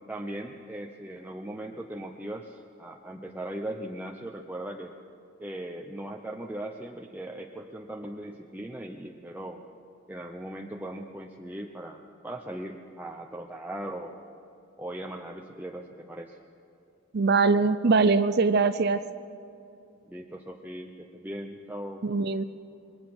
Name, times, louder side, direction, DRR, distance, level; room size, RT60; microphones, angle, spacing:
voice 1, 0.1-4.9 5.4-9.6 10.1-14.2 14.8-16.4 20.1-22.0, right 1 dB, 10° right, 1 dB, 0.8 m, -39 dB
voice 2, 17.1-19.0 22.0-22.4, right 4 dB, 55° right, 12 dB, 0.6 m, -22 dB
27.5 x 22.0 x 6.1 m, 2.7 s
head